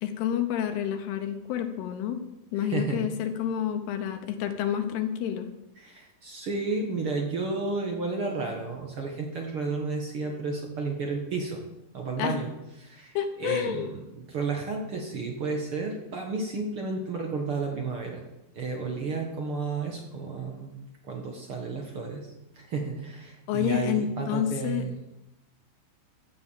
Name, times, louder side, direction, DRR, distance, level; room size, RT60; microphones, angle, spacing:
voice 1, 0.0-2.2 2.5-5.5 12.2-12.4 13.1-13.9 23.5-24.9, left 10 dB, 85° left, 6 dB, 3.0 m, -29 dB
voice 2, 2.5-3.0 5.8-11.6 11.9-12.5 12.8-18.2 18.5-20.7 21.0-22.3 22.5-25.0, right 4 dB, 55° right, 1 dB, 1.6 m, -32 dB
15.0 x 7.8 x 7.2 m, 0.94 s
omnidirectional pair, 4.6 m